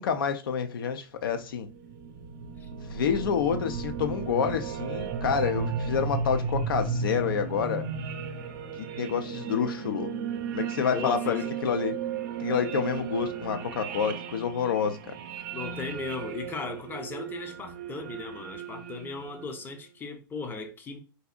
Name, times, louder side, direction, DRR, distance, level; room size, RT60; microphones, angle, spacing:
voice 1, 0.0-1.7 2.8-7.9 8.8-10.1 10.5-12.0 12.4-15.0, left 7 dB, 75° left, 0.6 m, -28 dB
sound 1, 1.4-19.7, right 6 dB, 55° right, 0.7 m, -35 dB
voice 2, 10.9-11.5 15.5-21.0, left 4 dB, 15° left, 0.6 m, -37 dB
4.0 x 2.5 x 2.3 m
hypercardioid pair, 120°, 12 cm